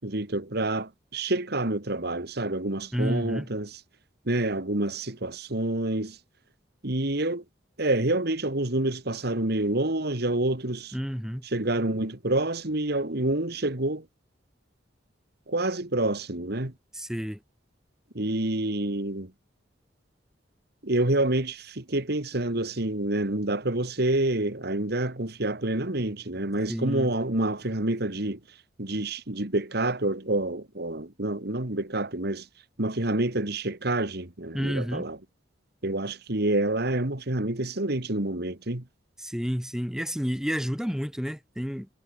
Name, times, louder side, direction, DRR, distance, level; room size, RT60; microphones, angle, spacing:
voice 1, 0.0-3.8 4.3-6.2 6.8-7.4 7.8-10.9 11.4-14.0 15.5-16.7 18.1-19.3 20.8-28.4 28.8-32.5 32.8-35.2 35.8-38.8, right 2 dB, 60° right, 2.4 m, -28 dB
voice 2, 2.9-3.5 10.9-11.4 16.9-17.4 26.7-27.1 34.5-35.1 39.2-41.9, equal, 5° right, 4.2 m, -30 dB
head